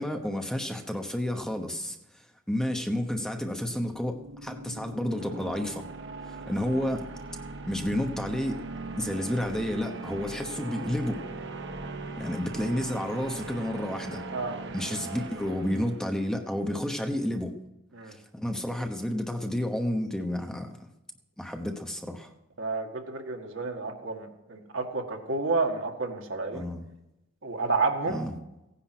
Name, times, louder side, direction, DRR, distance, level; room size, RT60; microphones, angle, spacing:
voice 1, 0.0-2.0 2.5-5.8 6.2-7.1 7.7-8.6 9.0-11.2 12.2-14.2 14.7-17.5 18.1-20.9 21.4-22.3 26.5-26.8 28.1-28.3, left 1 dB, 5° left, 4 dB, 1.0 m, -31 dB
sound 1, 3.6-16.4, right 3 dB, 55° right, 1.3 m, -40 dB
voice 2, 22.6-26.7 27.4-28.2, right 3 dB, 70° right, 2 dB, 2.1 m, -30 dB
16.5 x 10.0 x 6.1 m, 0.92 s
head